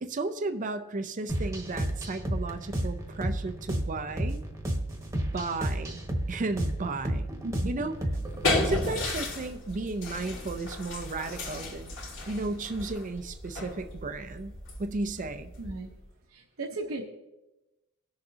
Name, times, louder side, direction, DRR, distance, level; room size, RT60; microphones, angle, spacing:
voice 1, 0.0-4.4 5.1-6.0 6.3-7.3 7.6-7.9 8.6-12.0 12.3-15.5, right 3 dB, 35° right, 8 dB, 0.5 m, -34 dB
sound 1, 1.3-9.0, right 1 dB, 15° right, 1.1 m, -32 dB
voice 2, 7.4-7.9 15.6-15.9 16.3-17.0, right 2 dB, 70° right, 0 dB, 0.9 m, -36 dB
sound 2, 8.0-16.1, left 2 dB, 65° left, 2.2 m, -34 dB
18.5 x 6.7 x 2.8 m, 1.0 s
head